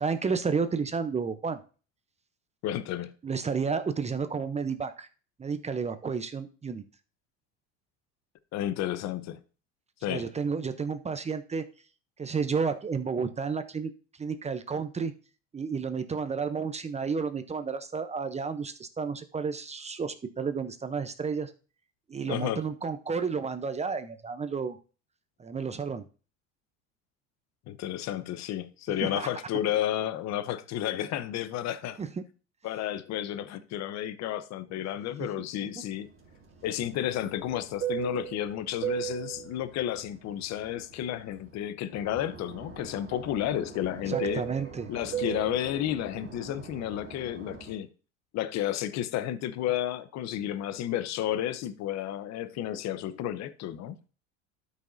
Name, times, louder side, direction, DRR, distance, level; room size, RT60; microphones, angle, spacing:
voice 1, 0.0-1.6 3.2-5.1 5.4-6.8 10.1-11.6 12.2-13.9 14.2-15.1 15.5-21.5 22.1-24.8 25.4-26.0 29.0-29.3 32.0-32.1 44.1-44.9, right 5 dB, 20° right, 0.7 m, -31 dB
voice 2, 2.6-3.1 8.5-9.4 10.0-10.3 22.3-22.6 27.7-32.0 32.6-36.1 36.6-44.5 44.9-47.9 48.3-54.0, left 12 dB, 50° left, 0.8 m, -32 dB
Fixed-wing aircraft airplane, 36.2-41.6 41.9-47.8, right 10 dB, 35° right, 3.5 m, -38 dB
12.5 x 5.5 x 2.6 m
supercardioid pair, 100°, 35 cm